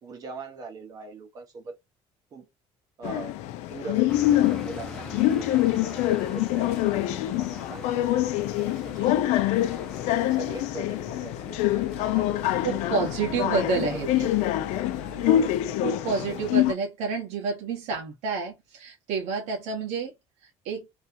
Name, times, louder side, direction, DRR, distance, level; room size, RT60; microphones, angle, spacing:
voice 1, 0.0-1.8 2.3-2.5 3.0-3.4 3.7-9.8 10.2-12.6 13.3-14.1 15.2-15.9, right 3 dB, 30° right, 0.7 m, -42 dB
sound 1, 3.0-16.7, left 13 dB, 85° left, 0.5 m, -25 dB
sound 2, 4.1-16.7, right 1 dB, 5° left, 0.7 m, -44 dB
voice 2, 12.6-14.3 15.8-20.1 20.6-20.9, right 5 dB, 75° right, 1.5 m, -29 dB
3.3 x 2.9 x 2.6 m
cardioid pair, 170°, 11 cm